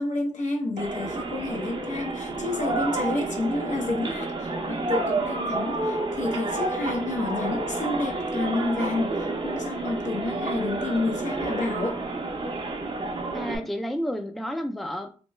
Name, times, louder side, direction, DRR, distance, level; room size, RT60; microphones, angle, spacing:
voice 1, 0.0-12.0, left 2 dB, 65° left, 0.9 m, -30 dB
sound 1, 0.8-13.6, right 2 dB, 40° right, 0.7 m, -30 dB
voice 2, 13.3-15.2, equal, ahead, 0.4 m, -31 dB
3.1 x 2.1 x 3.1 m
cardioid pair, 50°, 13 cm